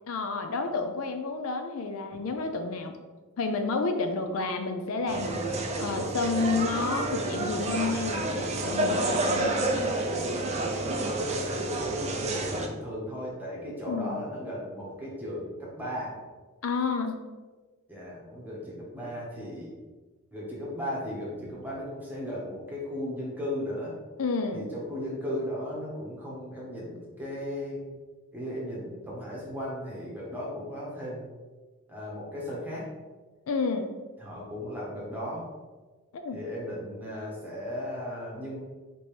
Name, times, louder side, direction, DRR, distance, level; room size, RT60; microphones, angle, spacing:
voice 1, 0.1-3.0 3.4-9.6 13.9-14.2 16.6-17.2 24.2-24.7 33.5-33.9 36.1-36.4, left 4 dB, 70° left, 6 dB, 0.4 m, -30 dB
sound 1, 5.1-12.7, right 2 dB, 30° right, 0.4 m, -29 dB
voice 2, 11.1-16.2 17.9-19.7 20.3-23.9 24.5-27.8 28.3-31.2 31.9-32.9 34.2-35.4 36.3-38.6, equal, 10° right, -5 dB, 1.2 m, -36 dB
5.1 x 3.0 x 3.2 m, 1.3 s
head